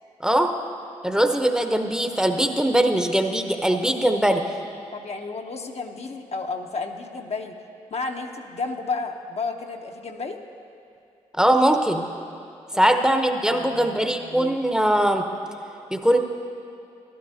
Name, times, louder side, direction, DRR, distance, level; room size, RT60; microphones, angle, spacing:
voice 1, 0.2-0.5 1.0-4.4 11.4-12.1 12.7-15.3 15.9-16.2, right 1 dB, 5° right, 5 dB, 0.7 m, -21 dB
voice 2, 4.9-7.6 7.9-10.4 12.7-13.0 13.5-14.6, left 4 dB, 50° left, 3 dB, 0.7 m, -32 dB
12.5 x 11.5 x 2.7 m, 2.6 s
hypercardioid pair, 40°, 14 cm